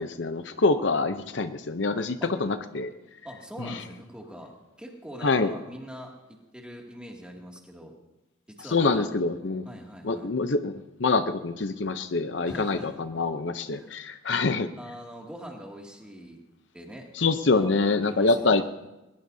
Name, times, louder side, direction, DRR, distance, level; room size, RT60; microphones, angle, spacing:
voice 1, 0.0-2.9 3.6-3.8 5.2-5.5 8.7-9.7 10.0-14.7 17.1-18.6, left 3 dB, 65° left, 10 dB, 0.7 m, -25 dB
voice 2, 3.2-4.5 4.8-7.9 8.5-9.1 9.7-10.3 12.4-13.0 13.7-13.9 14.8-16.4 16.7-17.1 17.5-18.6, equal, 5° right, -1 dB, 2.4 m, -43 dB
20.5 x 19.5 x 2.8 m, 1.0 s
head